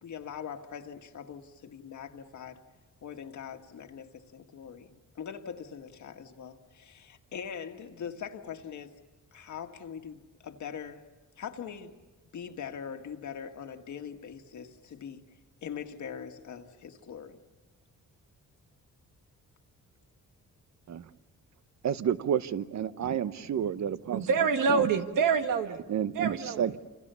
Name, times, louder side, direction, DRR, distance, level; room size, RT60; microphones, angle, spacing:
voice 1, 0.0-2.6 3.0-8.9 9.3-11.1 11.4-12.0 12.3-15.2 15.6-17.4, left 7 dB, 65° left, 1.9 m, -42 dB
voice 2, 21.8-24.2 24.7-24.9 25.9-26.8, right 9 dB, 60° right, 1.0 m, -30 dB
voice 3, 24.1-25.8 26.1-26.7, right 5 dB, 90° right, 1.8 m, -26 dB
28.5 x 28.0 x 7.0 m
cardioid pair, 125°, 31 cm